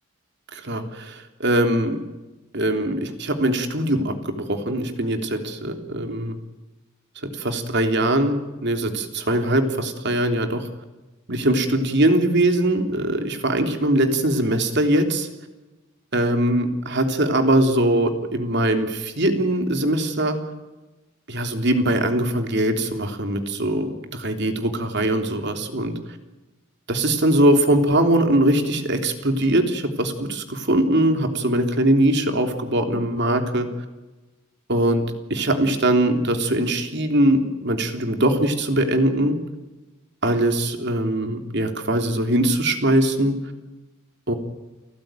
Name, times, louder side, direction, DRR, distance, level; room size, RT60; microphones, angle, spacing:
voice 1, 0.5-2.0 2.5-6.4 7.4-10.7 11.3-15.3 16.1-20.4 21.3-25.9 26.9-33.7 34.7-35.0 35.3-39.4 40.2-43.3 44.3-44.4, right 1 dB, 55° right, 6 dB, 3.3 m, -21 dB
29.5 x 15.5 x 9.1 m, 1.1 s
head